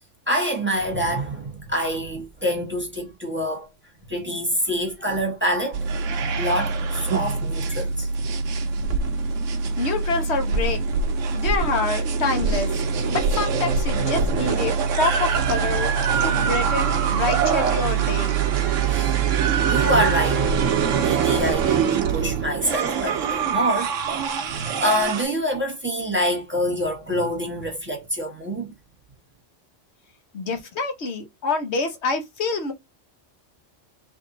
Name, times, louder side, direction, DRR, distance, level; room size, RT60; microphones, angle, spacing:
voice 1, 0.3-3.7 4.1-5.9 6.4-8.1 18.8-19.3 19.5-20.7 21.0-23.9 24.4-28.7, equal, 10° right, 1.1 m, -26 dB
sound 1, 5.7-25.2, right 6 dB, 85° right, 1.1 m, -23 dB
voice 2, 9.8-10.8 11.3-12.7 13.0-15.9 16.2-18.4 30.3-32.7, left 4 dB, 65° left, 1.2 m, -26 dB
3.6 x 2.6 x 3.8 m
omnidirectional pair, 1.3 m